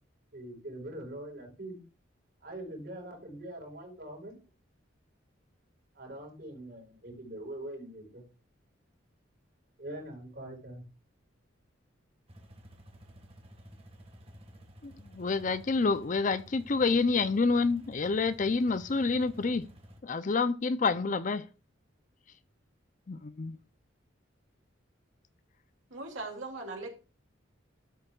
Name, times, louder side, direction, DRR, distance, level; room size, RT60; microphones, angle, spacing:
voice 1, 0.3-1.8 2.4-4.4 5.9-8.2 9.8-10.8, right 1 dB, 55° right, 4.4 m, -43 dB
sound 1, 12.3-20.0, equal, 30° right, 1.7 m, -53 dB
voice 2, 14.8-19.6 20.0-21.4 23.1-23.6, left 4 dB, 40° left, 0.5 m, -28 dB
voice 3, 25.9-26.9, right 3 dB, 75° right, 2.6 m, -39 dB
13.0 x 7.9 x 2.4 m
head